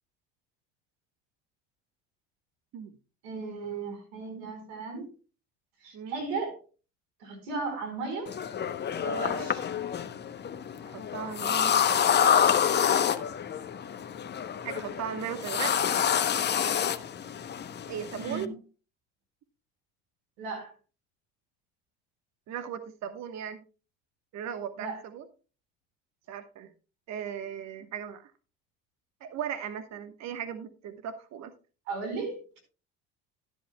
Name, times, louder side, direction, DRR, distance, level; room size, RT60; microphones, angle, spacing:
voice 1, 3.2-5.1 5.8-6.6 7.2-8.3 9.0-9.7 18.2-18.5 20.4-20.7 24.8-25.0 31.9-32.6, right 3 dB, 85° right, 6 dB, 4.5 m, -36 dB
sound 1, 8.3-18.5, left 8 dB, 35° left, 0.8 m, -28 dB
voice 2, 10.9-12.3 14.6-15.9 17.9-18.5 22.5-23.6 24.3-25.3 26.3-26.7 27.1-28.3 29.2-31.5, right 8 dB, 60° right, 10 dB, 1.2 m, -37 dB
12.5 x 11.0 x 2.2 m, 0.34 s
supercardioid pair, 85°, 31 cm